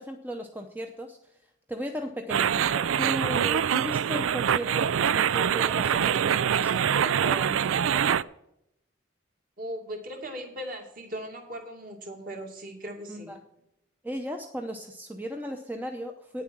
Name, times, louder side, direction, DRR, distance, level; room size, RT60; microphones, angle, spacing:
voice 1, 0.0-1.3 1.7-8.2 13.1-13.4 14.0-16.4, equal, 10° right, 4 dB, 0.7 m, -36 dB
sound 1, 2.3-8.2, right 8 dB, 85° right, 0.4 m, -24 dB
voice 2, 9.6-13.3, equal, 45° right, 2 dB, 2.4 m, -38 dB
9.5 x 7.4 x 7.4 m, 0.81 s
head